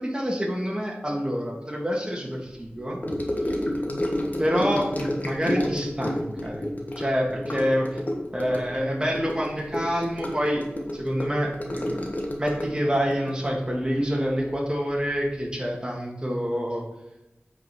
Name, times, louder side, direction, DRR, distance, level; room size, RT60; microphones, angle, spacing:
voice 1, 0.0-3.0 4.4-6.6 7.0-8.0 8.3-10.7 10.9-12.0 12.4-16.9, equal, 20° right, -1 dB, 1.9 m, -27 dB
Gurgling / Sink (filling or washing) / Trickle dribble, 3.0-14.7 14.9-15.3 15.5-15.6, left 1 dB, 40° left, 1.4 m, -30 dB
8.3 x 5.2 x 4.3 m, 0.94 s
wide cardioid pair, 45°, 4 cm